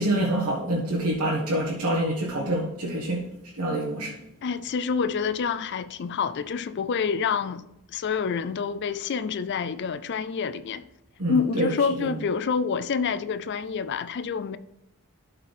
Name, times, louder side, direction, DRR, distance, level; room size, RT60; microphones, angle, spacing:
voice 1, 0.0-3.2 3.6-4.1 11.2-11.7 12.0-12.1, right 1 dB, 85° right, 1.5 m, -26 dB
voice 2, 4.4-10.9 11.3-14.6, left 6 dB, 50° left, 0.4 m, -27 dB
12.5 x 4.4 x 4.1 m
head